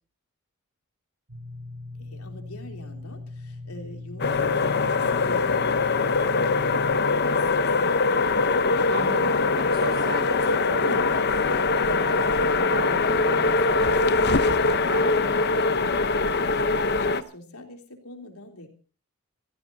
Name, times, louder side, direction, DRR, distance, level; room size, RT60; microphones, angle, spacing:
sound 1, 1.3-6.9, left 2 dB, 85° right, 5.8 m, -39 dB
voice 1, 1.9-6.5 7.3-8.7 16.5-18.7, left 1 dB, 80° left, 4 dB, 3.5 m, -45 dB
sound 2, 4.2-17.2, left 3 dB, 50° left, 0.9 m, -22 dB
voice 2, 8.9-16.0, right 3 dB, 45° right, 6 dB, 1.3 m, -39 dB
27.5 x 15.5 x 2.8 m, 0.38 s
head